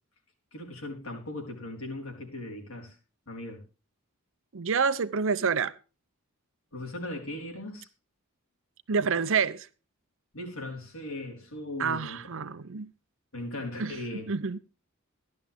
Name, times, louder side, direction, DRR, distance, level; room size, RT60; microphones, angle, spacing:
voice 1, 0.5-3.0 3.3-3.6 6.7-7.9 10.3-12.3 13.3-14.3, left 1 dB, 70° left, 4.3 m, -38 dB
voice 2, 4.5-5.7 8.9-9.7 11.8-12.9 13.8-13.9 14.3-14.6, right 5 dB, 60° right, 0.7 m, -27 dB
14.5 x 11.5 x 3.5 m
head